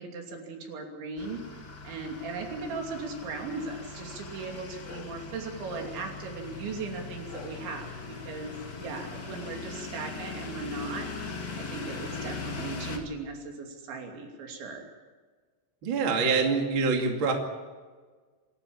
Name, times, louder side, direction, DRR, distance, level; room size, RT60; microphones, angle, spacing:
voice 1, 0.0-1.4 1.8-7.9 8.2-11.1 11.6-14.9, right 3 dB, 65° right, 2 dB, 5.1 m, -38 dB
sound 1, 1.2-13.0, left 4 dB, 40° left, 1.4 m, -40 dB
voice 2, 15.8-17.3, right 4 dB, 35° right, 2 dB, 2.2 m, -25 dB
27.0 x 12.5 x 8.6 m, 1.4 s
omnidirectional pair, 5.8 m